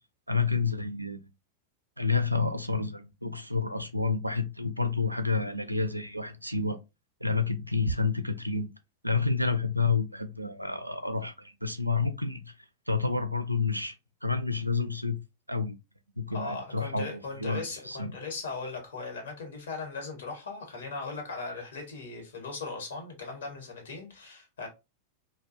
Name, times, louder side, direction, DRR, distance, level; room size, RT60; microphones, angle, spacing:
voice 1, 0.3-1.2 2.0-6.8 7.2-8.7 9.0-12.5 12.9-13.9 14.2-15.2 15.5-15.8 16.2-18.1, left 4 dB, 90° right, 0.3 m, -29 dB
voice 2, 16.3-24.7, left 4 dB, 65° left, 1.0 m, -38 dB
2.4 x 2.2 x 2.5 m
figure-of-eight pair, 90°, 0 cm